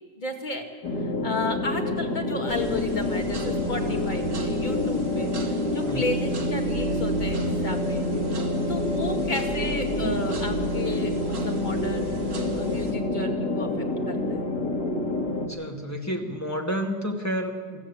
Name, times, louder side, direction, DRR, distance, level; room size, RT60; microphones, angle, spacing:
voice 1, 0.2-0.6 1.0-8.1 8.7-12.2 12.5-14.4, left 2 dB, 25° left, 2 dB, 2.2 m, -33 dB
sound 1, 0.8-15.5, left 1 dB, 65° left, 2.8 m, -27 dB
sound 2, 2.5-12.9, right 1 dB, 75° right, 3.0 m, -38 dB
voice 2, 5.8-6.2 15.5-17.8, equal, 10° left, 2 dB, 1.9 m, -30 dB
24.5 x 13.5 x 8.5 m, 1.5 s
omnidirectional pair, 1.9 m